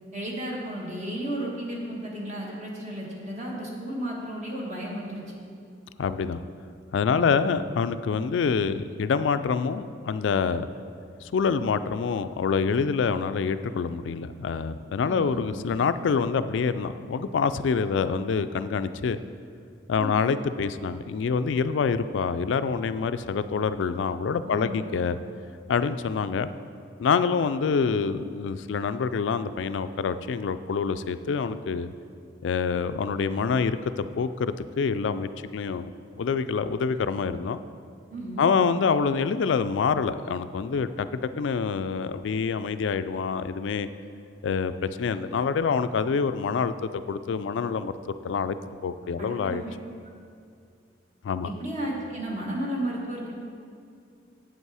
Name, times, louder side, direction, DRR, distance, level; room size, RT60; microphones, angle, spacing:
voice 1, 0.1-5.4 7.1-7.5 15.0-15.4 20.0-20.3 24.4-24.9 25.2-25.4 38.1-38.5 49.2-49.7 51.4-53.4, right 1 dB, 40° right, -2 dB, 1.3 m, -34 dB
voice 2, 6.0-6.4 6.9-10.7 11.2-19.2 19.9-25.2 25.7-26.5 27.0-31.9 32.4-35.9 36.2-37.6 38.4-41.1 41.4-43.9 44.4-47.9 48.2-48.6 48.8-49.6 51.2-51.5, left 5 dB, 75° left, 12 dB, 0.3 m, -26 dB
8.1 x 7.8 x 4.8 m, 2.4 s
head